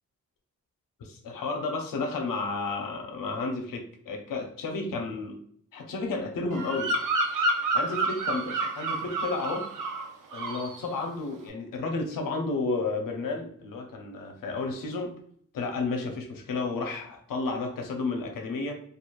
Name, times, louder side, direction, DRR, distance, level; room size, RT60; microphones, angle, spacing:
voice 1, 1.0-5.4 5.7-6.9 7.7-9.7 10.3-15.1 15.5-18.7, left 3 dB, 80° left, 3 dB, 0.7 m, -32 dB
Bird vocalization bird call bird song, 6.5-10.1 10.3-10.7, right 2 dB, 70° right, 0.6 m, -29 dB
3.0 x 2.4 x 2.4 m, 0.63 s
cardioid pair, 75°, 33 cm